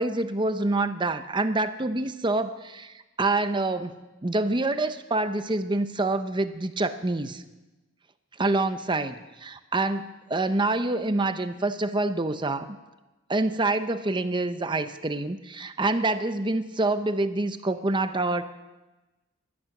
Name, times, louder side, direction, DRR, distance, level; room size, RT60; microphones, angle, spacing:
voice 1, 0.0-7.4 8.4-12.7 13.3-18.4, right 2 dB, 25° right, 10 dB, 0.7 m, -26 dB
18.0 x 12.0 x 6.0 m, 1.1 s
head